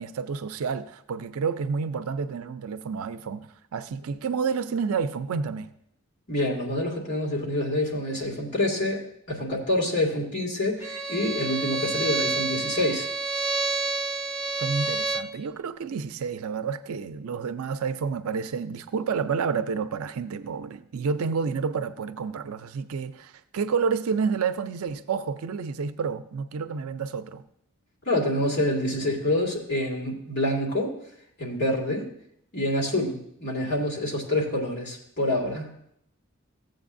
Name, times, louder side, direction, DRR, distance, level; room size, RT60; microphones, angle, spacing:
voice 1, 0.0-5.7 14.6-27.4, right 5 dB, 85° right, 0.4 m, -29 dB
voice 2, 6.3-9.0 9.3-13.1 28.1-30.9 31.4-32.1 32.5-35.7, left 1 dB, 50° left, 2.1 m, -27 dB
Bowed string instrument, 10.8-15.3, right 3 dB, 15° right, 0.7 m, -29 dB
14.5 x 7.7 x 2.6 m
head